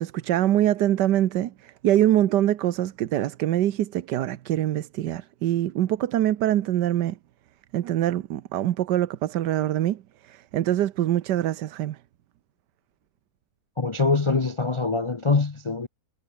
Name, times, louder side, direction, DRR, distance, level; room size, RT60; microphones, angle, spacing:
voice 1, 0.0-7.1 7.7-10.0 10.3-12.0, right 12 dB, 80° right, 1.4 m, -24 dB
voice 2, 13.8-15.9, left 4 dB, 50° left, 0.3 m, -23 dB
omnidirectional pair, 1.8 m